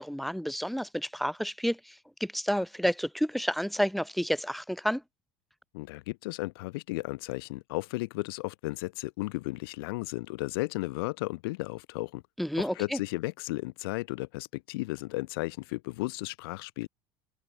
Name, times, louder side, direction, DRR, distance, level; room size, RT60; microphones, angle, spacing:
voice 1, 0.0-5.0 12.4-13.0, equal, ahead, 6.2 m, -30 dB
voice 2, 5.7-12.2 12.6-16.9, left 22 dB, 75° left, 3.2 m, -34 dB
open air
hypercardioid pair, 90°, 12 cm